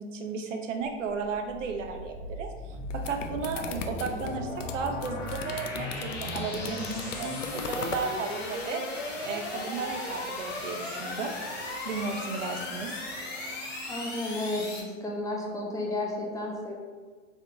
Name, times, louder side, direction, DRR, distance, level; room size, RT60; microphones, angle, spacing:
voice 1, 0.0-11.3 11.8-13.0, right 4 dB, 75° right, 4 dB, 0.7 m, -34 dB
sound 1, 0.8-14.8, left 2 dB, 25° left, 1.2 m, -37 dB
sound 2, 2.7-8.1, left 7 dB, 75° left, 0.6 m, -39 dB
voice 2, 13.9-16.7, left 2 dB, 10° left, -2 dB, 0.7 m, -32 dB
3.7 x 3.5 x 3.8 m, 1.5 s
hypercardioid pair, 105°, 38 cm